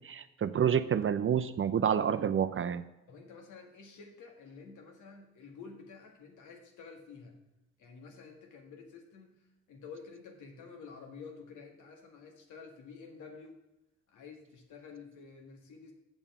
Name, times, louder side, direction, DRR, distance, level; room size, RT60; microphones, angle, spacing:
voice 1, 0.0-2.8, right 8 dB, 45° right, 11 dB, 0.5 m, -28 dB
voice 2, 3.1-7.4 7.8-9.4 9.7-13.6 14.1-15.9, left 5 dB, 85° left, 3 dB, 1.7 m, -50 dB
7.2 x 7.1 x 5.4 m, 0.94 s
cardioid pair, 70°, 29 cm